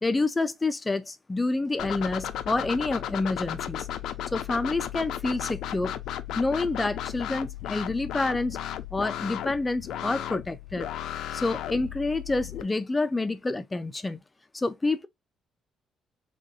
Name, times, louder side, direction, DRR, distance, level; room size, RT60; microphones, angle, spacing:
voice 1, 0.0-3.9 4.3-5.9 6.4-8.6 8.9-10.9 11.3-14.2 14.5-15.1, left 3 dB, 15° left, 0.4 m, -28 dB
sound 1, 1.8-12.6, left 11 dB, 75° left, 0.4 m, -35 dB
3.6 x 2.6 x 4.0 m
cardioid pair, 145°, 0 cm